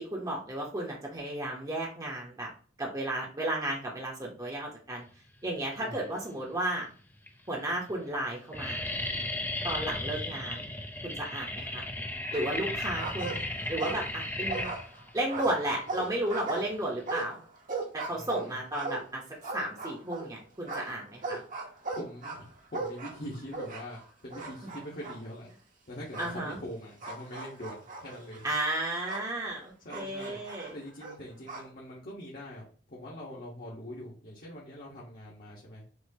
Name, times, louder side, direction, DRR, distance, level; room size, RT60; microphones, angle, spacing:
voice 1, 0.0-2.5 2.8-5.0 5.4-6.9 7.5-8.9 9.6-10.7 11.0-11.8 12.3-13.4 13.7-14.7 15.1-17.4 17.9-19.2 19.5-21.4 26.2-26.6 28.4-30.7, right 1 dB, 20° right, -2 dB, 1.0 m, -33 dB
sound 1, 5.9-6.5 7.2-7.3 7.5-7.9 8.2-17.1, left 1 dB, 10° left, 0.6 m, -36 dB
voice 2, 9.8-10.4 18.0-18.6 21.9-25.5 25.9-28.5 29.8-30.4 30.7-35.8, equal, 50° left, -5 dB, 1.3 m, -43 dB
sound 2, 12.3-12.7 13.0-14.2 14.5-20.3 20.7-24.0 24.3-25.2 26.1-26.3 27.0-29.3 29.9-31.7, right 3 dB, 45° right, 1.1 m, -38 dB
6.2 x 2.9 x 2.8 m, 0.40 s
head